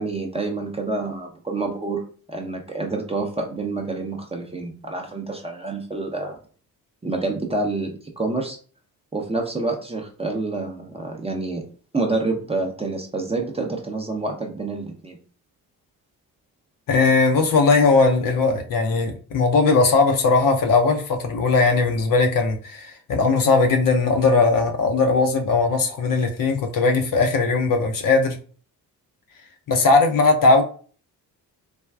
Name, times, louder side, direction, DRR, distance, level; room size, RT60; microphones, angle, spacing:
voice 1, 0.0-6.4 7.0-8.6 9.1-11.6 11.9-15.2, right 3 dB, 15° right, 1 dB, 0.6 m, -28 dB
voice 2, 16.9-28.4 29.7-30.6, left 3 dB, 45° left, 4 dB, 0.6 m, -19 dB
3.3 x 2.3 x 2.3 m, 0.42 s
hypercardioid pair, 45°, 47 cm